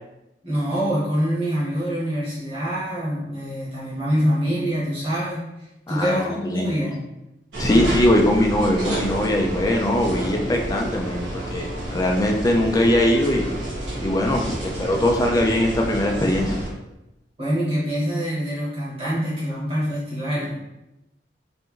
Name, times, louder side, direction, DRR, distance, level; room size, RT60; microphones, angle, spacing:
voice 1, 0.4-5.4 5.9-7.0 17.4-20.6, equal, 35° right, -8 dB, 1.1 m, -25 dB
voice 2, 5.9-6.7 7.6-13.5 14.0-16.5, left 1 dB, 20° left, 1 dB, 0.3 m, -21 dB
sound 1, 7.5-16.7, right 1 dB, 90° right, 0.9 m, -29 dB
2.8 x 2.6 x 2.4 m, 0.92 s
head